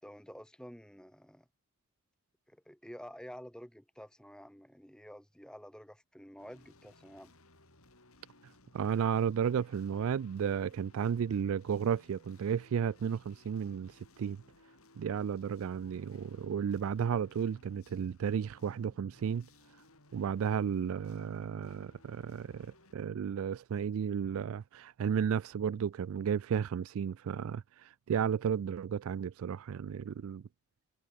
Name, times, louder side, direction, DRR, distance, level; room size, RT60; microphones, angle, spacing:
voice 1, 0.0-1.5 2.5-7.3, equal, 5° left, 5.3 m, -50 dB
sound 1, 6.4-23.0, left 2 dB, 75° left, 6.9 m, -62 dB
voice 2, 8.7-14.4 15.0-19.5 20.1-30.4, right 7 dB, 70° right, 0.3 m, -33 dB
head